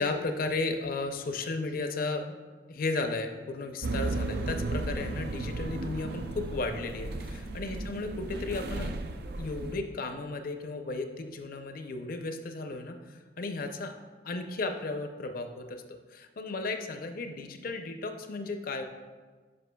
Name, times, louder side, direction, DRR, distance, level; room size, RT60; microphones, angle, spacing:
voice 1, 0.0-2.4 2.7-8.9 9.4-13.9 14.2-15.8 16.1-18.8, left 3 dB, 55° left, 6 dB, 0.5 m, -34 dB
sound 1, 3.8-9.8, right 2 dB, 60° right, 0.4 m, -34 dB
9.3 x 5.7 x 2.2 m, 1.4 s
head